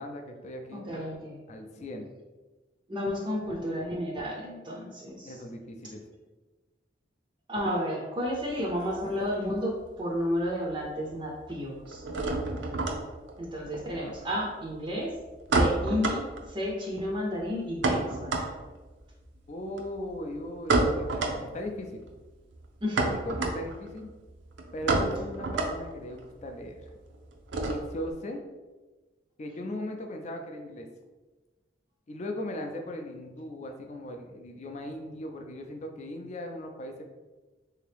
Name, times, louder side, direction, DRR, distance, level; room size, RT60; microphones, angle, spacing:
voice 1, 0.0-0.8 1.5-2.1 5.2-6.1 19.5-22.0 23.0-24.1 24.7-26.8 27.6-28.4 29.4-30.9 32.1-37.1, left 1 dB, 40° left, 4 dB, 0.4 m, -38 dB
voice 2, 0.9-1.4 2.9-5.4 7.5-12.0 13.4-15.1 15.5-18.5 22.8-23.0, equal, 25° right, -2 dB, 0.5 m, -32 dB
sound 1, 8.2-9.9 10.1-10.8 11.1-28.1, right 2 dB, 85° right, 0.5 m, -31 dB
3.4 x 2.8 x 3.3 m, 1.2 s
head